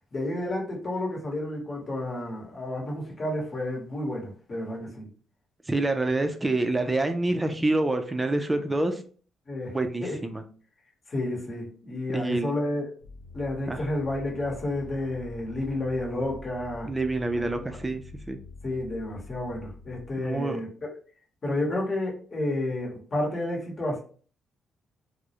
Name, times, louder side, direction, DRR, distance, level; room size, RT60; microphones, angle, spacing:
voice 1, 0.1-5.1 9.5-9.7 10.0-10.2 11.1-12.9 13.3-16.9 17.7-17.8 18.6-20.9 21.4-24.0, left 1 dB, 35° left, -1 dB, 1.0 m, -31 dB
voice 2, 5.7-9.0 9.7-10.4 12.1-12.5 13.7-13.8 16.9-18.0 18.3-18.4 20.2-20.6, right 2 dB, 15° right, 6 dB, 0.3 m, -27 dB
sound 1, 13.0-20.4, left 3 dB, 85° left, 0.7 m, -45 dB
2.2 x 2.0 x 2.8 m, 0.42 s
cardioid pair, 90°, 0 cm